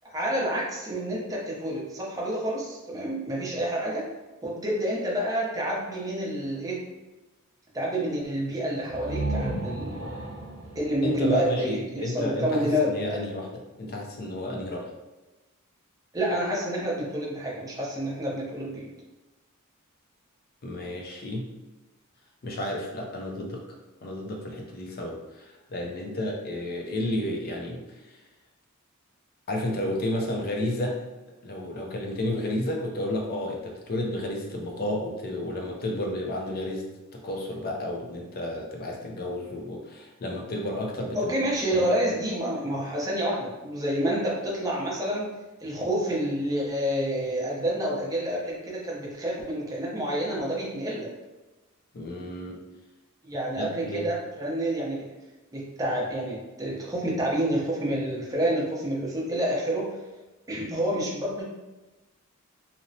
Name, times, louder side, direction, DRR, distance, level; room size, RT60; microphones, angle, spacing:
voice 1, 0.0-4.1 4.4-6.8 7.7-10.1 10.7-13.2 16.1-18.9 41.1-45.3 45.6-51.1 53.2-55.1 55.5-59.9 60.5-61.4, right 1 dB, 15° right, -4 dB, 0.6 m, -28 dB
sound 1, 8.8-12.6, right 2 dB, 80° right, 0.9 m, -34 dB
voice 2, 11.0-14.9 20.6-21.5 22.4-23.6 24.0-27.8 28.1-28.2 29.5-31.0 31.4-41.3 41.7-42.0 51.9-52.6 53.6-54.1, left 1 dB, 45° left, 0 dB, 0.5 m, -32 dB
2.8 x 2.0 x 2.6 m, 1.1 s
head